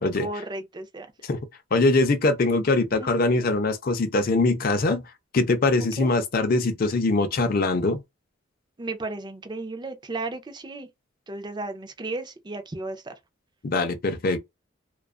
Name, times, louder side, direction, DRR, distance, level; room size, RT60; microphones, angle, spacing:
voice 1, 0.2-1.1 2.9-3.1 5.8-6.1 8.8-10.9 11.3-13.1, right 2 dB, 25° right, 0.5 m, -34 dB
voice 2, 1.7-8.0 13.6-14.4, left 3 dB, 50° left, 0.5 m, -22 dB
2.4 x 2.3 x 2.3 m
head